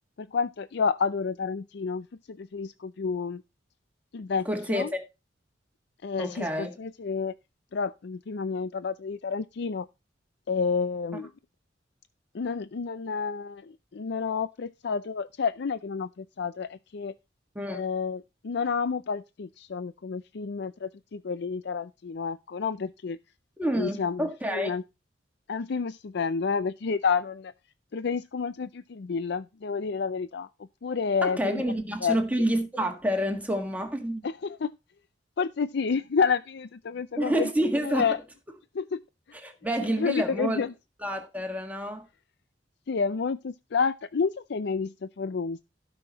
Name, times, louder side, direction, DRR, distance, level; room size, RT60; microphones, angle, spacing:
voice 1, 0.2-3.4 4.1-4.9 6.0-7.3 7.7-9.9 10.5-11.3 12.3-17.1 17.7-23.2 23.8-24.8 25.5-27.5 27.9-30.5 30.8-31.6 32.0-32.2 34.2-34.7 35.4-37.5 37.8-38.2 38.7-39.0 40.0-40.7 42.9-45.6, left 5 dB, 65° left, 0.5 m, -30 dB
voice 2, 4.4-5.0 6.2-6.7 11.1-11.2 17.5-17.8 23.6-24.7 31.2-34.2 37.2-38.1 39.3-40.7 41.0-42.0, right 1 dB, 10° right, 1.6 m, -28 dB
16.5 x 5.8 x 4.1 m
head